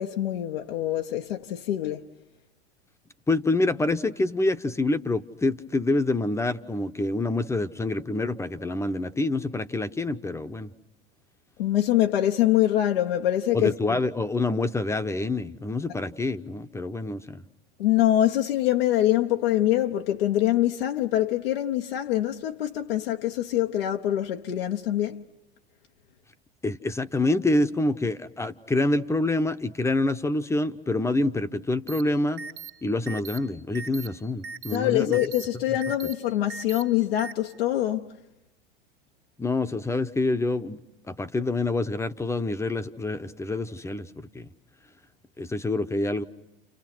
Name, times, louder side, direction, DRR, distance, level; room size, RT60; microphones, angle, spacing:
voice 1, 0.0-2.1 11.6-14.0 17.8-25.2 34.7-38.1, left 13 dB, 80° left, 1.2 m, -24 dB
voice 2, 3.3-10.7 13.5-17.4 26.6-32.5 32.8-35.2 39.4-40.8 41.1-44.5 45.4-46.2, left 2 dB, 10° left, 1.0 m, -26 dB
sound 1, 31.9-32.0 32.4-32.7 33.1-33.4 33.7-34.1 34.4-34.8 35.1-35.4 35.8-36.1 36.5-36.8 37.2-37.3, right 6 dB, 70° right, 1.9 m, -38 dB
30.0 x 29.5 x 6.2 m
hypercardioid pair, 110°, 29 cm